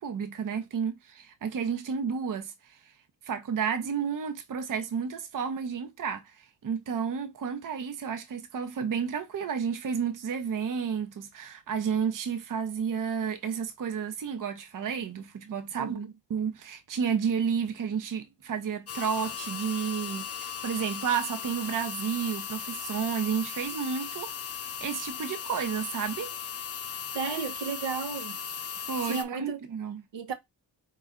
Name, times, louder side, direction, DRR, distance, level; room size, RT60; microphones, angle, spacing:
voice 1, 0.0-2.8 3.2-16.0 16.3-26.3 28.9-30.0, right 7 dB, 50° right, 0.7 m, -31 dB
voice 2, 15.8-16.1 27.1-28.4 29.0-29.6 30.1-30.3, right 5 dB, 85° right, 0.9 m, -33 dB
sound 1, 18.9-29.2, left 8 dB, 35° left, 0.5 m, -37 dB
4.3 x 2.4 x 3.6 m
cardioid pair, 85°, 43 cm